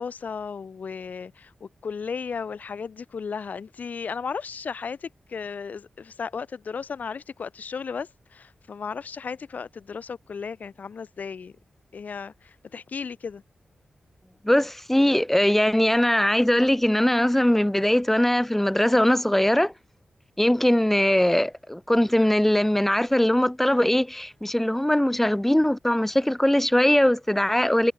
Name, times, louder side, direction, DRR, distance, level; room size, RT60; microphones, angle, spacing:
voice 1, 0.0-11.5 11.9-13.4, left 6 dB, 70° left, 6.9 m, -35 dB
voice 2, 14.4-19.7 20.4-27.9, left 1 dB, 10° left, 5.9 m, -21 dB
cardioid pair, 70°, 3 cm